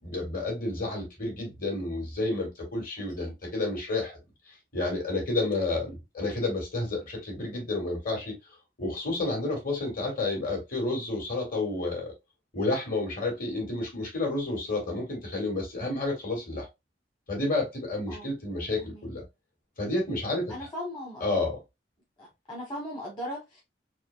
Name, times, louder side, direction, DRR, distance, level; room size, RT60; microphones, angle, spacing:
voice 1, 0.0-4.2 4.7-8.4 8.8-12.1 12.5-16.7 17.3-19.2 19.8-20.6 21.2-21.6, left 2 dB, 50° left, 1.9 m, -30 dB
voice 2, 20.5-21.2 22.2-23.6, left 1 dB, 25° left, 1.0 m, -38 dB
4.2 x 2.5 x 2.2 m
head